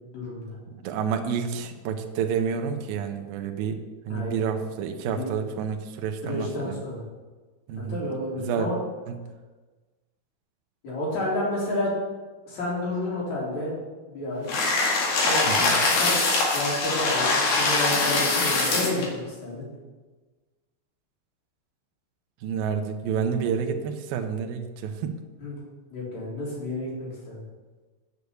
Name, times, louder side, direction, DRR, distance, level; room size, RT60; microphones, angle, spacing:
voice 1, 0.1-0.6 4.1-4.3 5.0-5.3 6.2-7.0 7.9-8.8 10.8-11.9 12.5-13.7 14.1-14.5 15.2-16.2 16.5-19.6 25.4-25.6 25.9-27.4, left 1 dB, 40° left, -6 dB, 4.3 m, -30 dB
voice 2, 0.7-3.8 4.1-6.8 7.7-8.0 8.5-8.7 9.1-9.2 15.5-15.8 22.4-25.1, right 7 dB, 85° right, 5 dB, 2.1 m, -29 dB
sound 1, 14.5-19.1, left 3 dB, 55° left, 3.5 m, -23 dB
8.3 x 8.2 x 6.8 m, 1.3 s
omnidirectional pair, 5.4 m